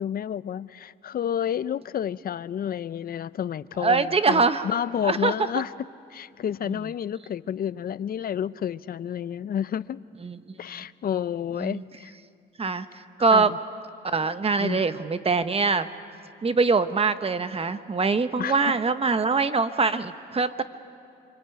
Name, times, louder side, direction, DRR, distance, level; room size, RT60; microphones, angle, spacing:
voice 1, 0.0-5.7 6.1-10.0 10.6-12.1 13.3-13.6 14.6-14.9 18.4-18.7, left 9 dB, 50° left, 17 dB, 0.6 m, -30 dB
voice 2, 3.8-4.7 5.0-5.3 6.7-6.8 10.2-10.5 11.6-11.8 12.6-12.9 13.2-13.5 14.0-15.9 16.4-20.6, right 4 dB, 30° right, 11 dB, 1.1 m, -23 dB
25.5 x 25.0 x 9.3 m, 2.4 s
cardioid pair, 90°, 20 cm